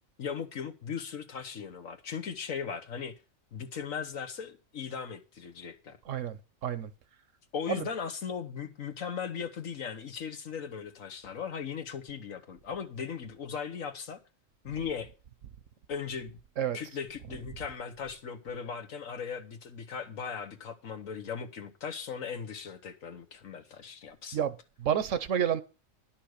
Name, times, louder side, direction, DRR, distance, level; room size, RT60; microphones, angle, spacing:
voice 1, 0.2-3.1 3.5-6.0 7.5-14.2 14.6-15.1 15.9-16.4 16.7-24.4, left 6 dB, 75° left, 1.6 m, -38 dB
voice 2, 6.0-6.9 7.7-7.9 14.7-14.8 16.6-16.8 24.3-25.6, right 9 dB, 70° right, 1.2 m, -30 dB
11.0 x 5.9 x 6.5 m
omnidirectional pair, 1.4 m